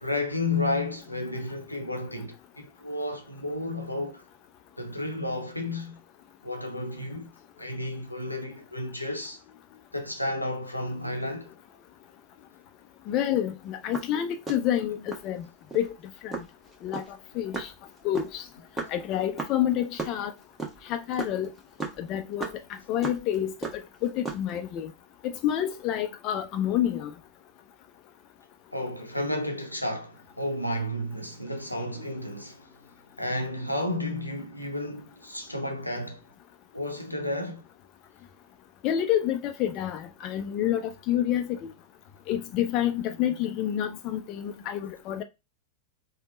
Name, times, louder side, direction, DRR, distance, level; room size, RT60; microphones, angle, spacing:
voice 1, 0.0-4.2 4.8-6.0 6.4-7.3 7.6-9.4 9.9-11.5 28.7-32.7 33.2-36.2 36.7-37.6, left 1 dB, 90° left, 0.7 m, -32 dB
voice 2, 13.1-15.5 15.7-15.9 16.2-16.4 16.8-17.0 17.4-17.7 18.0-18.4 18.9-20.3 20.9-21.5 22.0-22.5 22.9-23.5 24.0-24.9 25.2-27.1 38.8-41.7 42.3-45.2, left 11 dB, 40° left, 0.4 m, -28 dB
sound 1, 13.7-15.3 15.7-15.9 16.3-20.1 20.4-23.4 23.6-24.6, right 3 dB, 15° right, 1.0 m, -35 dB
3.4 x 2.1 x 3.7 m
figure-of-eight pair, 90°, 0 cm